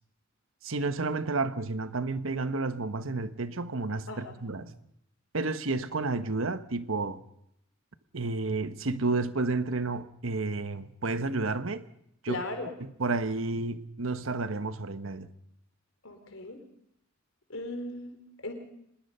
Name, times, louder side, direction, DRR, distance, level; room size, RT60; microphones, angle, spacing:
voice 1, 0.6-4.7 5.3-7.2 8.1-11.8 12.2-12.4 13.0-15.3, right 3 dB, 80° right, 1.2 m, -31 dB
voice 2, 12.3-12.7 16.0-16.6 17.5-18.2 18.4-18.5, left 2 dB, 85° left, 4.1 m, -37 dB
24.5 x 20.5 x 5.6 m
head